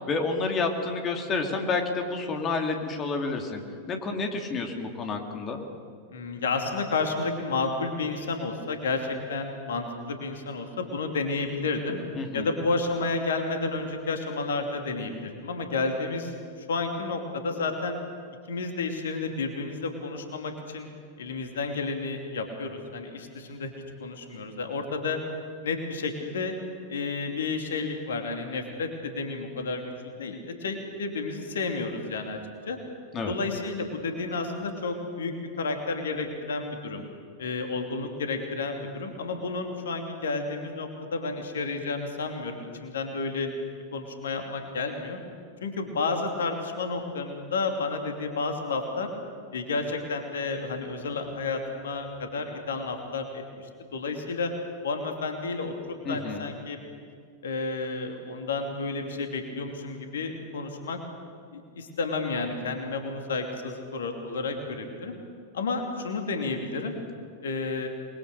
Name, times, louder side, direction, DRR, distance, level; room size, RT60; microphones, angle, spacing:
voice 1, 0.1-3.6 3.9-5.6 12.1-12.4 33.1-33.3 56.0-56.4, left 3 dB, 25° left, 4 dB, 2.8 m, -29 dB
voice 2, 6.1-12.0 12.3-18.0 18.5-20.9 21.2-23.7 24.0-25.2 25.6-26.6 26.9-32.4 32.7-32.8 33.2-37.0 37.4-43.5 43.9-45.2 45.6-49.1 49.5-54.5 54.8-55.7 56.1-56.8 57.4-61.0 61.5-65.1 65.5-66.9 67.4-67.9, left 3 dB, 65° left, 4 dB, 2.7 m, -31 dB
27.0 x 21.5 x 6.8 m, 2.2 s
figure-of-eight pair, 90°, 0 cm